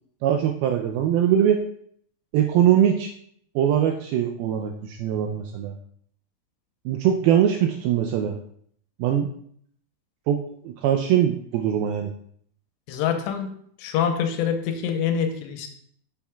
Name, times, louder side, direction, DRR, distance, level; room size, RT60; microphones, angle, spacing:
voice 1, 0.2-1.6 2.3-3.1 3.6-5.7 6.9-8.3 9.0-9.3 10.3-12.1, right 10 dB, 85° right, 4 dB, 2.2 m, -22 dB
voice 2, 12.9-13.5 13.8-15.7, left 8 dB, 90° left, 6 dB, 3.0 m, -25 dB
9.9 x 7.3 x 2.3 m, 0.64 s
omnidirectional pair, 4.9 m